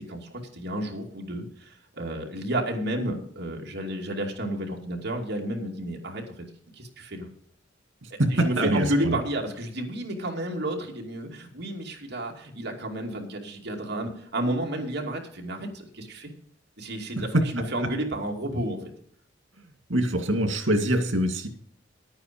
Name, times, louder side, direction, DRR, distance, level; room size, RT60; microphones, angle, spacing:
voice 1, 0.0-6.4 6.8-7.3 8.1-16.3 16.8-18.9, right 1 dB, 60° right, 1 dB, 2.6 m, -31 dB
voice 2, 8.0-9.2 17.1-17.2 17.8-17.9 19.9-21.5, right 1 dB, 90° right, 5 dB, 2.3 m, -24 dB
11.5 x 9.0 x 5.2 m, 0.62 s
head